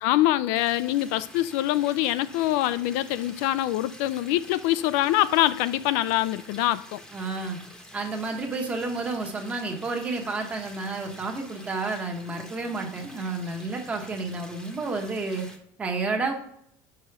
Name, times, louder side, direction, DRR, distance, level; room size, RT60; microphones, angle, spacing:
voice 1, 0.0-7.0, left 14 dB, 80° left, 0.4 m, -24 dB
sound 1, 0.6-15.5, left 1 dB, 10° left, 0.9 m, -47 dB
voice 2, 7.1-7.6 7.9-15.5 15.8-16.3, right 3 dB, 15° right, 1.0 m, -30 dB
5.5 x 4.9 x 5.9 m
cardioid pair, 180°, 8 cm